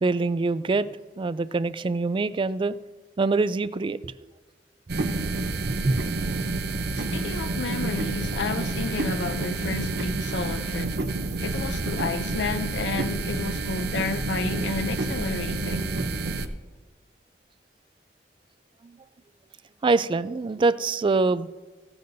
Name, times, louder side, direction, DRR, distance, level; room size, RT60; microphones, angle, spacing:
voice 1, 0.0-2.8 3.2-4.1 5.6-6.0 18.8-18.9 19.8-21.5, right 3 dB, 30° right, 0.3 m, -24 dB
sound 1, 4.9-16.5, right 2 dB, 65° right, 0.7 m, -29 dB
voice 2, 6.9-11.0 11.4-15.9, left 4 dB, 80° left, 0.5 m, -31 dB
16.0 x 12.0 x 2.7 m
head